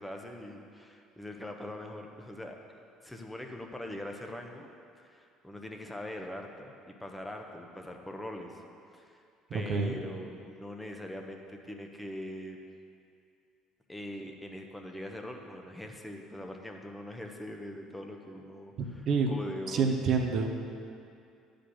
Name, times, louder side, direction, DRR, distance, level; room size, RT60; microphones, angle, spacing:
voice 1, 0.0-2.6 3.0-4.7 5.0-8.6 8.9-9.2 9.5-12.6 13.9-20.3, left 1 dB, 10° left, 2 dB, 1.2 m, -42 dB
voice 2, 9.5-10.0 19.1-19.3 19.7-20.5, right 5 dB, 50° right, 3 dB, 0.9 m, -27 dB
9.9 x 5.2 x 8.1 m, 2.5 s
figure-of-eight pair, 55°, 0 cm